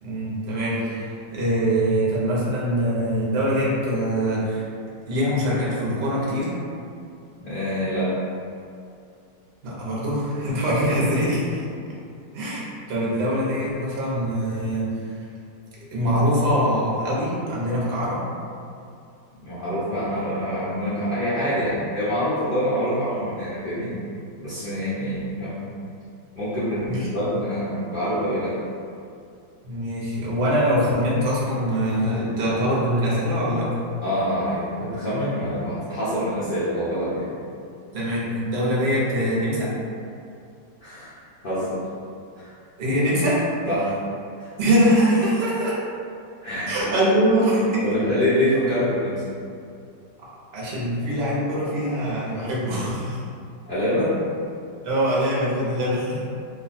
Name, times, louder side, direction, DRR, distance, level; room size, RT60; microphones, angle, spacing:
voice 1, 0.0-4.6 5.1-6.6 9.6-11.6 12.3-15.0 15.9-18.2 26.8-27.1 29.6-33.8 37.9-39.8 42.8-43.4 44.6-45.8 46.7-47.8 50.5-53.2 54.8-56.2, equal, 50° right, -6 dB, 0.8 m, -23 dB
voice 2, 7.4-8.2 19.4-23.9 24.4-25.6 26.3-28.6 34.0-37.3 40.8-41.1 41.4-41.8 42.4-42.5 43.6-44.0 44.4-44.5 46.4-46.7 47.0-47.1 47.8-49.2 53.7-54.2, equal, 55° left, -12 dB, 0.6 m, -25 dB
2.8 x 2.3 x 4.1 m, 2.5 s
omnidirectional pair, 2.0 m